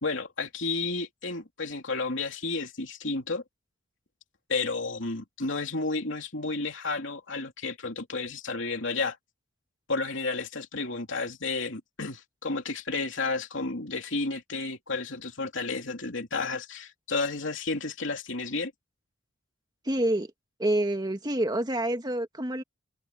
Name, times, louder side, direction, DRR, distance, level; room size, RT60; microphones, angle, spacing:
voice 1, 0.0-3.4 4.5-9.2 9.9-18.7, left 3 dB, 65° left, 3.4 m, -32 dB
voice 2, 19.9-20.3 20.6-22.6, right 1 dB, 20° right, 2.0 m, -27 dB
head